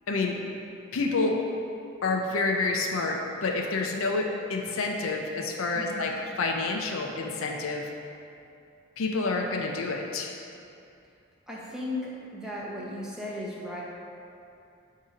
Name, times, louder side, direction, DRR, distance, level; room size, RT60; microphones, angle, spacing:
voice 1, 0.1-0.4 0.9-1.4 2.0-7.9 9.0-10.3, left 3 dB, 75° left, 2 dB, 0.6 m, -28 dB
voice 2, 5.7-6.1 11.5-13.8, left 1 dB, 5° right, -5 dB, 0.7 m, -36 dB
7.1 x 2.8 x 4.8 m, 2.6 s
head